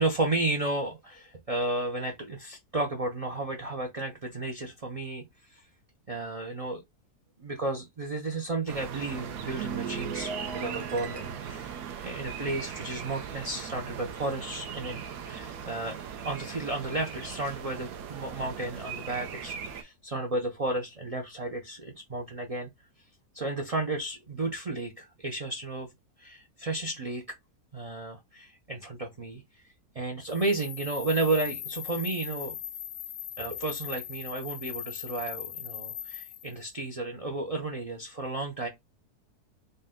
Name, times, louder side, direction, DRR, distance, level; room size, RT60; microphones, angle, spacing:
voice 1, 0.0-5.2 5.5-5.6 6.1-6.8 7.4-22.7 23.3-25.9 26.2-27.2 27.7-29.6 29.9-32.6 33.4-38.7, right 2 dB, 55° right, 0.4 m, -33 dB
sound 1, 8.7-19.8, right 7 dB, 70° right, 1.0 m, -39 dB
sound 2, 9.0-13.6 13.9-14.2, right 7 dB, 85° right, 1.3 m, -40 dB
sound 3, 30.2-36.6, left 11 dB, 80° left, 1.1 m, -39 dB
4.0 x 2.2 x 3.6 m
omnidirectional pair, 1.7 m